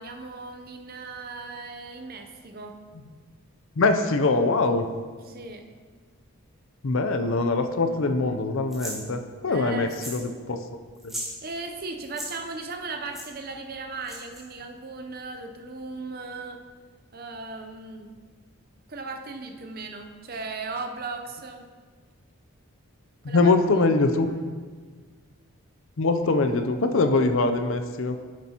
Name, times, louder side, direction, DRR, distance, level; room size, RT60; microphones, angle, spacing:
voice 1, 0.0-2.8 5.2-5.7 7.9-8.2 9.5-10.0 11.4-16.6 17.1-18.1 18.9-21.6 23.2-23.5 24.1-24.4, right 3 dB, 40° right, 5 dB, 0.7 m, -37 dB
voice 2, 3.8-4.9 6.8-10.2 10.5-10.6 23.2-24.3 26.0-28.2, left 3 dB, 60° left, 7 dB, 0.5 m, -23 dB
sound 1, 8.7-9.0 9.9-10.3 10.5-10.6 11.0-11.3 12.0-12.3 13.1-13.3 14.0-14.4, equal, ahead, 1.7 m, -36 dB
9.6 x 7.6 x 2.9 m, 1.5 s
head